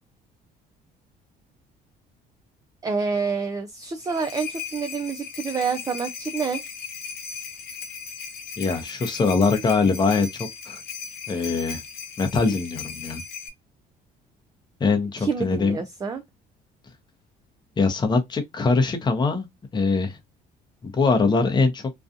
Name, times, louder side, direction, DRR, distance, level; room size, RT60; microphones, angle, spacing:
voice 1, 2.8-6.6 15.2-16.2, right 5 dB, 20° right, 0.4 m, -28 dB
Jingle Bells, 3.8-13.5, left 6 dB, 70° left, 0.7 m, -37 dB
voice 2, 8.6-10.8 11.3-11.8 12.2-13.2 14.8-15.8 17.8-19.5 19.7-20.2 20.8-21.9, left 4 dB, 25° left, 0.7 m, -22 dB
2.6 x 2.3 x 2.5 m
cardioid pair, 110°, 17 cm